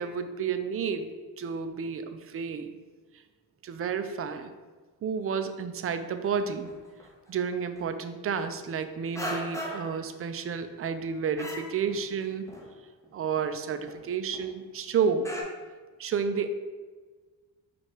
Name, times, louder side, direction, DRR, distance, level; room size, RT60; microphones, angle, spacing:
voice 1, 0.0-2.7 3.6-4.5 5.0-6.7 7.3-12.5 13.1-15.3 16.0-16.5, right 6 dB, 35° right, 9 dB, 0.4 m, -31 dB
sound 1, 6.2-6.4 6.6-7.3 7.7-7.8 8.4-8.8 9.1-10.0 10.4-11.0 11.4-12.2 12.5-12.7 13.0-13.1 13.3-14.0 14.3-14.5 14.8-14.9 15.2-15.4, equal, 5° left, 0.8 m, -38 dB
4.6 x 2.4 x 4.2 m, 1.4 s
cardioid pair, 80°, 42 cm